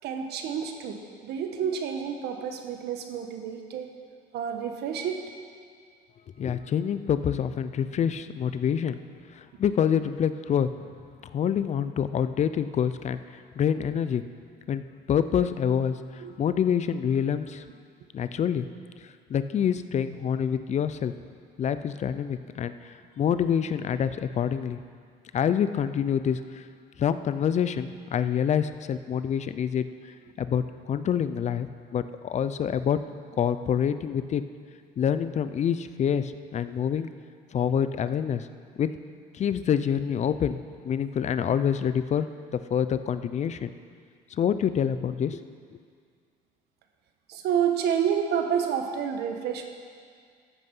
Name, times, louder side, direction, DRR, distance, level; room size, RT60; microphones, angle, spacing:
voice 1, 0.0-3.9 4.3-5.2 16.2-16.3 47.3-49.6, right 8 dB, 75° right, 5 dB, 1.3 m, -29 dB
voice 2, 6.4-9.0 9.3-10.7 11.3-13.2 13.6-14.2 14.7-17.6 18.1-18.7 19.3-21.1 21.6-24.8 25.3-26.6 27.0-29.9 30.4-31.7 31.9-33.0 33.4-34.4 35.0-37.1 37.5-38.5 38.8-38.9 39.3-42.3 42.7-43.7 44.3-45.4, left 8 dB, 45° left, 12 dB, 0.5 m, -26 dB
13.5 x 8.5 x 5.5 m, 2.1 s
cardioid pair, 110°, 17 cm